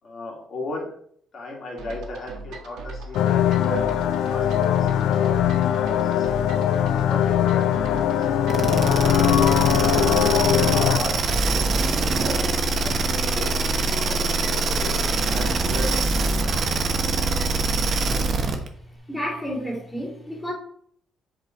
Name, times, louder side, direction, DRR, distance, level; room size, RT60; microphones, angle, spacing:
voice 1, 0.0-0.9 1.3-6.3 6.7-8.3 8.7-9.4 9.7-10.4 10.7-11.6 12.1-13.5 13.9-16.0 16.4-16.6, left 1 dB, 45° left, 2.3 m, -36 dB
sound 1, 1.8-17.6, right 3 dB, 80° right, 1.3 m, -39 dB
sound 2, 3.1-11.0, left 9 dB, 80° left, 0.5 m, -21 dB
sound 3, 8.5-18.7, right 3 dB, 40° right, 1.1 m, -23 dB
voice 2, 19.1-20.5, equal, 5° left, 2.6 m, -30 dB
7.6 x 4.8 x 4.5 m
cardioid pair, 135°, 0 cm